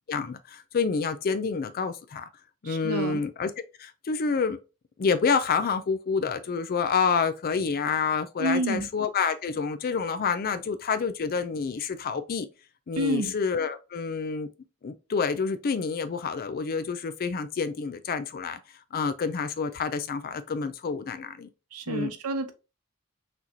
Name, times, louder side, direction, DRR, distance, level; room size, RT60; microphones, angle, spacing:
voice 1, 0.1-2.3 2.6-3.5 3.8-4.6 5.0-12.5 12.9-14.5 14.8-18.6 18.9-21.5 21.9-22.1, left 5 dB, 40° left, 0.4 m, -28 dB
voice 2, 2.6-3.2 8.4-8.9 13.0-13.3 21.7-22.5, right 1 dB, 80° right, 0.8 m, -29 dB
6.0 x 3.0 x 2.7 m
head